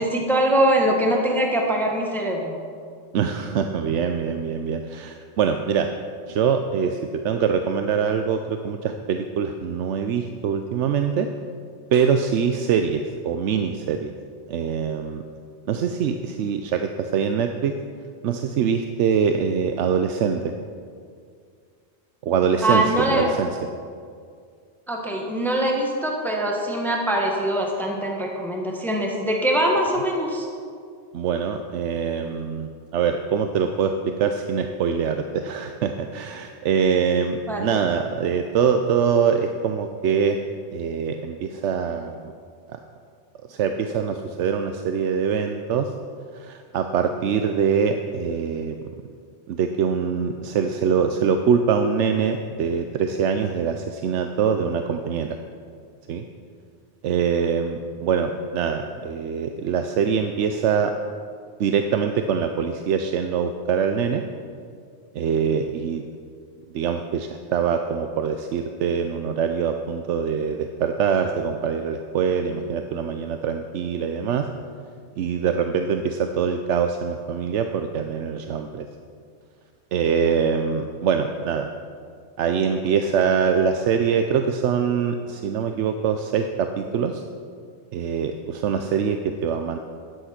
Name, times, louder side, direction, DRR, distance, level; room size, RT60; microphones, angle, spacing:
voice 1, 0.0-2.6 22.6-23.3 24.9-30.5 37.5-37.8, right 1 dB, ahead, 0 dB, 1.3 m, -23 dB
voice 2, 3.1-5.9 6.3-7.0 7.2-11.3 11.9-14.1 14.5-15.2 15.7-17.7 18.2-20.5 22.2-23.5 31.1-40.4 40.7-42.3 42.7-42.8 43.5-45.9 46.3-48.8 49.5-55.4 56.1-56.2 57.0-60.9 61.6-64.2 65.1-66.0 66.7-74.5 75.2-78.9 79.9-81.7 82.4-87.2 87.9-89.8, right 6 dB, 90° right, 7 dB, 1.0 m, -24 dB
13.0 x 9.4 x 5.8 m, 2.2 s
omnidirectional pair, 1.2 m